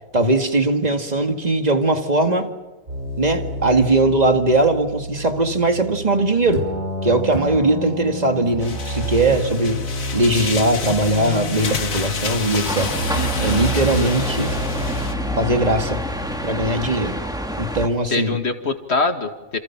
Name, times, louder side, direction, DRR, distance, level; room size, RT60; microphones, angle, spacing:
voice 1, 0.1-2.5 3.2-6.7 7.0-9.8 10.1-13.0 13.4-14.6 15.4-16.0 16.4-17.2 17.6-18.4, right 2 dB, 30° right, 6 dB, 2.1 m, -20 dB
sound 1, 2.9-16.8, equal, 80° right, 5.9 m, -29 dB
sound 2, 8.6-15.1, left 5 dB, 80° left, 2.1 m, -30 dB
sound 3, 12.7-17.9, equal, 5° right, 2.0 m, -28 dB
voice 2, 13.1-13.6 18.1-19.6, left 3 dB, 50° left, 6 dB, 2.4 m, -24 dB
28.5 x 28.5 x 6.0 m, 1.2 s
omnidirectional pair, 1.4 m